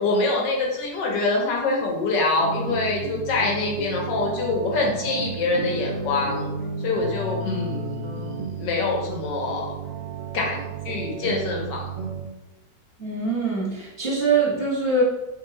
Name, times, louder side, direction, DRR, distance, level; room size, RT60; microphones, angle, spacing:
voice 1, 0.0-6.5 6.8-9.7 10.3-10.6 10.8-12.1, left 3 dB, 80° left, -1 dB, 1.5 m, -25 dB
sound 1, 2.4-12.2, right 4 dB, 55° right, 0.5 m, -32 dB
voice 2, 13.0-15.0, right 3 dB, 10° left, -7 dB, 1.0 m, -23 dB
3.0 x 2.7 x 4.0 m, 0.95 s
omnidirectional pair, 1.9 m